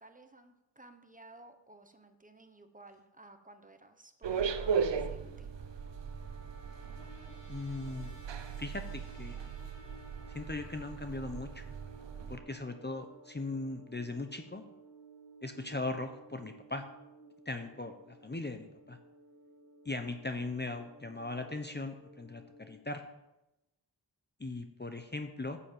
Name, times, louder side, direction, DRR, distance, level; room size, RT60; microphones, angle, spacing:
voice 1, 0.0-5.5, right 2 dB, 20° right, 7 dB, 1.2 m, -56 dB
sound 1, 4.2-12.4, right 6 dB, 75° right, 0.8 m, -37 dB
sound 2, 5.1-22.7, right 3 dB, 40° left, 3.1 m, -56 dB
voice 2, 7.5-8.2 8.6-9.5 10.3-11.7 12.3-14.6 15.4-16.8 17.5-19.0 19.8-23.0 24.4-25.6, left 2 dB, 25° left, 6 dB, 0.9 m, -39 dB
10.5 x 7.1 x 7.6 m, 0.97 s
wide cardioid pair, 90°, 44 cm